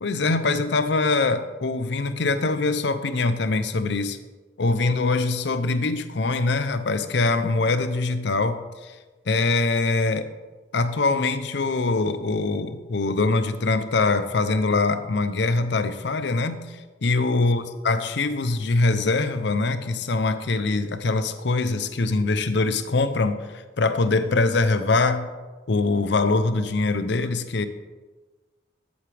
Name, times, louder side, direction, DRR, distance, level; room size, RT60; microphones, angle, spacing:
voice 1, 0.0-4.2 4.6-9.0 9.3-10.3 10.7-25.3 25.7-27.7, left 3 dB, 60° left, 11 dB, 0.6 m, -23 dB
12.5 x 8.1 x 3.4 m, 1.3 s
head